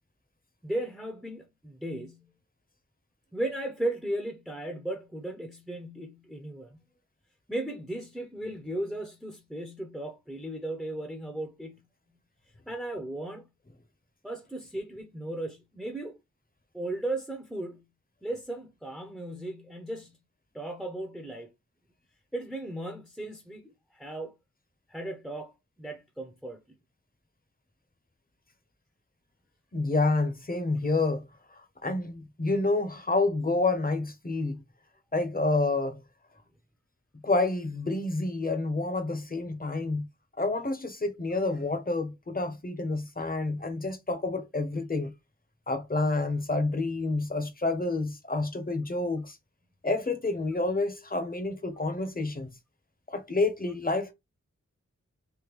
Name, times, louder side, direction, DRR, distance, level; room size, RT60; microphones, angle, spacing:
voice 1, 0.6-2.3 3.3-6.8 7.5-11.8 12.7-13.5 14.2-16.2 16.7-17.8 18.2-20.2 20.5-21.5 22.3-24.3 24.9-26.6, right 1 dB, ahead, 0.7 m, -36 dB
voice 2, 29.7-34.6 35.1-36.0 37.2-40.1 40.4-45.1 45.7-49.4 49.8-52.5 53.1-54.1, left 2 dB, 30° left, 0.8 m, -29 dB
3.5 x 2.2 x 3.0 m
wide cardioid pair, 55°, 31 cm